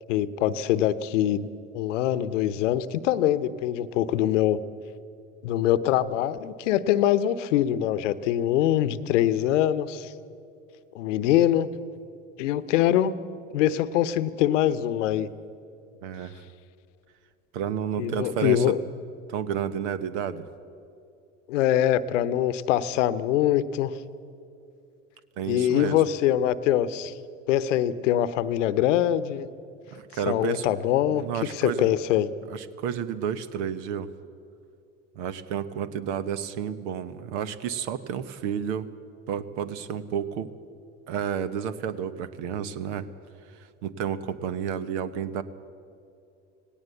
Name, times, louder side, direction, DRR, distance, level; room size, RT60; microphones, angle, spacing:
voice 1, 0.1-1.5 1.7-4.6 5.4-10.1 10.9-11.7 12.4-13.2 13.5-15.3 18.0-18.8 21.5-23.9 25.5-27.2 27.5-29.5 30.3-31.2 31.5-32.3, left 11 dB, 75° left, 15 dB, 0.9 m, -23 dB
voice 2, 16.0-16.4 17.5-18.8 19.3-20.4 25.4-26.0 29.9-30.7 31.1-31.9 32.5-34.1 35.1-38.9 39.3-40.5 41.1-43.1 43.5-45.4, right 8 dB, 65° right, 14 dB, 1.1 m, -31 dB
18.5 x 17.5 x 8.2 m, 2.6 s
hypercardioid pair, 70°, 37 cm